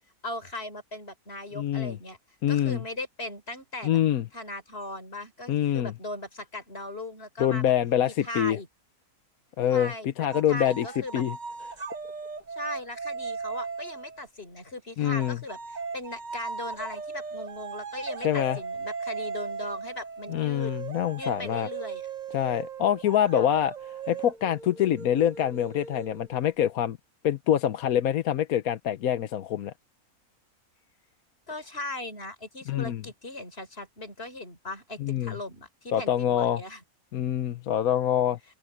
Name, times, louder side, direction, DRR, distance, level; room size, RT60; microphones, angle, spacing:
voice 1, 0.2-2.2 2.5-4.0 4.3-7.7 8.1-8.7 9.7-11.2 12.6-20.7 21.2-22.1 23.3-23.6 31.5-36.8, left 1 dB, 40° left, 4.7 m, -38 dB
voice 2, 1.5-2.0 2.4-2.8 3.8-4.2 5.5-5.9 7.4-8.6 9.6-10.9 11.1-11.4 15.0-15.4 18.2-18.6 20.3-21.7 22.3-23.7 24.1-27.0 27.2-29.7 32.7-33.0 35.0-35.3 35.9-36.6 37.1-38.4, left 10 dB, 75° left, 1.3 m, -25 dB
sound 1, 10.3-14.2 15.2-26.5, right 5 dB, 35° right, 0.8 m, -38 dB
omnidirectional pair, 1.6 m